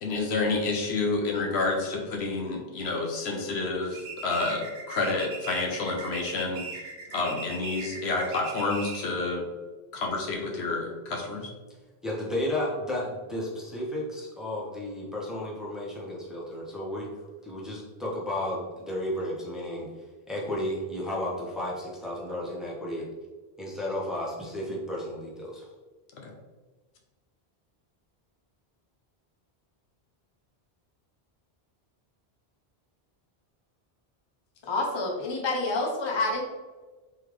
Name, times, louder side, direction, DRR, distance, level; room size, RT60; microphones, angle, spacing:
voice 1, 0.0-6.6 7.1-9.5 9.9-11.5 26.1-26.3, left 3 dB, 80° left, 1 dB, 1.0 m, -29 dB
sound 1, 3.9-9.2, right 4 dB, 65° right, 0.9 m, -39 dB
voice 2, 12.0-17.1 17.4-19.9 20.3-23.0 23.6-25.6, left 1 dB, ahead, -5 dB, 0.8 m, -33 dB
voice 3, 34.7-36.4, left 2 dB, 40° left, 0 dB, 0.4 m, -28 dB
3.6 x 3.5 x 3.2 m, 1.3 s
omnidirectional pair, 1.1 m